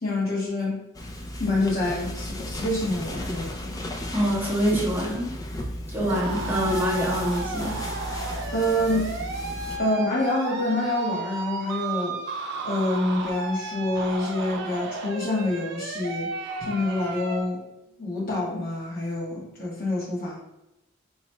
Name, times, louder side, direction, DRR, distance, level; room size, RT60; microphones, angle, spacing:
voice 1, 0.0-0.8 1.4-3.9 6.0-6.5 8.5-9.2 9.8-12.2 12.6-16.3 16.7-17.6 18.0-20.4, left 1 dB, 50° left, -5 dB, 1.3 m, -27 dB
sound 1, 0.9-9.8, left 1 dB, 20° left, 0.4 m, -34 dB
voice 2, 4.1-5.3 5.9-7.8, equal, 10° right, -6 dB, 0.8 m, -25 dB
sound 2, 6.1-17.4, right 4 dB, 60° right, 0.6 m, -34 dB
3.0 x 2.4 x 4.3 m, 0.89 s
head